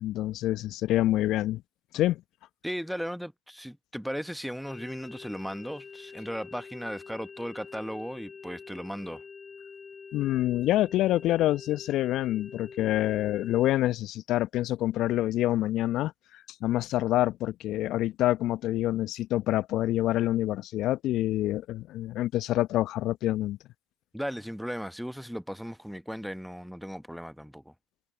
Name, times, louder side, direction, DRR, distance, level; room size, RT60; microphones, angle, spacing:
voice 1, 0.0-1.6 1.9-2.2 10.1-23.6, left 14 dB, 55° left, 1.1 m, -27 dB
voice 2, 2.6-9.2 24.1-27.7, equal, ahead, 1.1 m, -36 dB
sound 1, 4.7-13.7, left 5 dB, 25° left, 7.6 m, -46 dB
hypercardioid pair, 70°, 0 cm